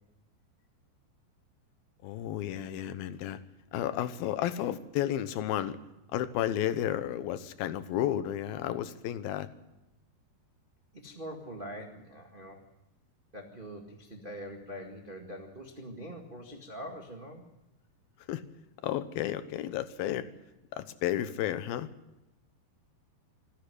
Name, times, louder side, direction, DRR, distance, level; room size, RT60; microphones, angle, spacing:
voice 1, 2.0-3.4 3.7-5.8 6.1-9.5 18.3-18.4 18.8-20.3 20.7-21.9, left 11 dB, 75° left, 12 dB, 2.6 m, -32 dB
voice 2, 10.9-12.6 13.3-17.4, equal, 70° right, 1 dB, 0.5 m, -43 dB
26.5 x 10.5 x 10.0 m, 0.95 s
omnidirectional pair, 4.8 m